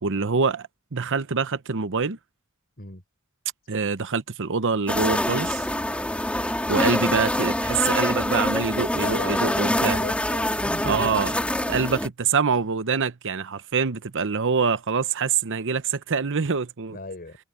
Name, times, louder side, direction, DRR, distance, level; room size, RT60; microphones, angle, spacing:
voice 1, 0.0-2.2 3.7-5.7 6.7-10.0 10.8-11.3 11.7-17.0, right 5 dB, 60° right, 0.9 m, -25 dB
sound 1, 4.9-12.1, left 1 dB, 5° left, 2.4 m, -25 dB
voice 2, 9.0-11.2 16.9-17.4, left 2 dB, 45° left, 5.1 m, -37 dB
head